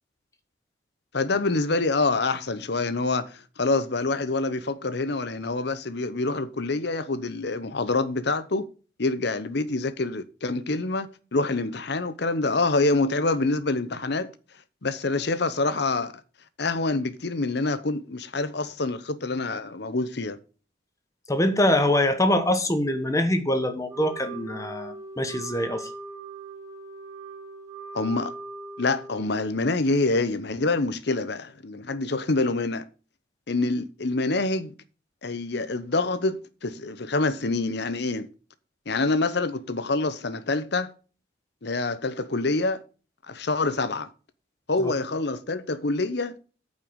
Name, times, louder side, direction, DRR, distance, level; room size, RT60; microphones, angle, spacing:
voice 1, 1.1-8.6 9.0-14.3 14.8-16.1 16.6-20.4 27.9-28.3 28.8-32.8 33.5-34.7 35.2-38.3 38.9-40.9 41.6-42.8 43.3-44.1 44.7-46.3, left 3 dB, 55° left, 0.8 m, -26 dB
voice 2, 21.3-25.9 44.8-44.9, left 1 dB, 15° left, 1.2 m, -24 dB
Wind instrument woodwind instrument, 23.9-29.5, right 3 dB, 15° right, 1.9 m, -40 dB
8.9 x 5.5 x 6.3 m
head